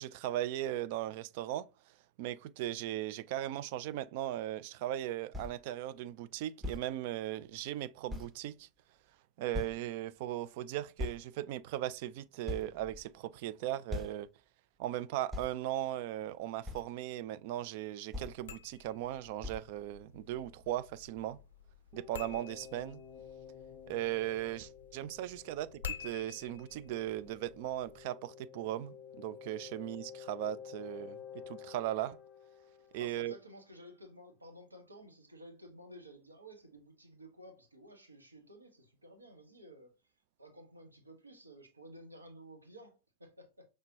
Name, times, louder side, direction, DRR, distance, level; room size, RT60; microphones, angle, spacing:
voice 1, 0.0-1.7 2.2-8.7 9.4-14.3 14.8-21.4 21.9-23.0 23.9-32.2 32.9-33.3, right 13 dB, 50° right, 0.3 m, -38 dB
sound 1, 5.3-5.6 6.6-6.9 7.6-7.7 8.1-8.4 9.5-9.9 11.0-11.2 11.9-12.0 12.5-13.3 13.9-14.3 15.3-15.5 16.6-16.9 18.1-18.4 19.4-19.7, left 2 dB, 10° right, 1.0 m, -40 dB
sound 2, 18.3-28.1, left 7 dB, 60° left, 0.4 m, -50 dB
sound 3, 21.9-33.5, left 8 dB, 20° left, 0.7 m, -52 dB
voice 2, 32.9-39.9 40.4-43.7, equal, 80° right, 1.1 m, -54 dB
5.8 x 3.3 x 2.7 m
figure-of-eight pair, 90°, 0 cm